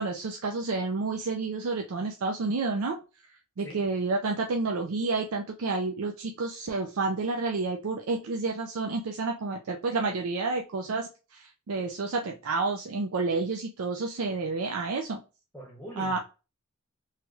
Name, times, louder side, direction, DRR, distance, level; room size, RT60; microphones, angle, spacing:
voice 1, 0.0-3.0 3.6-15.2 16.0-16.2, right 3 dB, 75° right, 0.5 m, -30 dB
voice 2, 3.6-3.9 15.5-16.2, equal, 10° left, 0.7 m, -43 dB
3.2 x 3.1 x 2.3 m
head